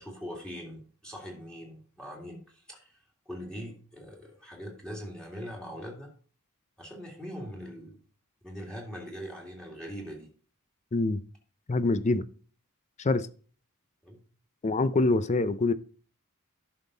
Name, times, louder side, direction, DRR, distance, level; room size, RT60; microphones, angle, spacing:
voice 1, 0.0-3.0 3.3-6.1 6.8-8.0 8.4-10.3 14.0-14.2, equal, 5° left, 2.1 m, -42 dB
voice 2, 10.9-11.2 11.7-12.2 13.0-13.3 14.6-15.7, left 2 dB, 30° left, 0.5 m, -25 dB
11.0 x 5.5 x 4.0 m
head